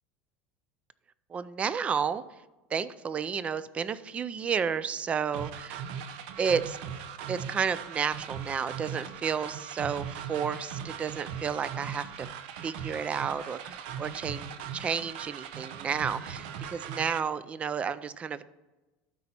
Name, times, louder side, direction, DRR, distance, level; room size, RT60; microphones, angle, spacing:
voice 1, 1.3-2.2 2.7-5.8 6.4-6.8 7.3-12.3 12.6-18.4, right 6 dB, 25° right, 16 dB, 0.4 m, -31 dB
sound 1, 5.3-17.2, right 8 dB, 75° right, 0.7 m, -39 dB
12.5 x 4.4 x 4.2 m, 1.1 s
supercardioid pair, 135°, 5 cm